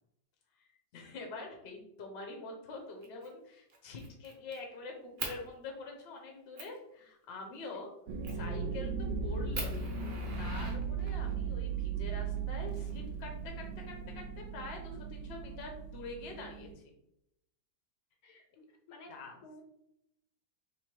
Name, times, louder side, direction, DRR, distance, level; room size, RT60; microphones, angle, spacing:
voice 1, 0.9-7.9 8.3-9.9 10.4-16.9 19.1-19.4, left 3 dB, 45° left, 2 dB, 1.0 m, -45 dB
Fire, 3.0-3.3 3.7-4.6 5.2-5.4 6.0-6.1 6.6-6.8 8.2-8.5 9.0-9.1 9.5-11.3 12.4-13.3, right 4 dB, 45° right, 0.8 m, -43 dB
sound 1, 8.1-16.7, right 5 dB, 90° right, 1.2 m, -37 dB
voice 2, 18.2-19.1 19.4-19.6, left 2 dB, 70° left, 2 dB, 1.2 m, -54 dB
3.5 x 3.1 x 4.5 m, 0.80 s
omnidirectional pair, 1.8 m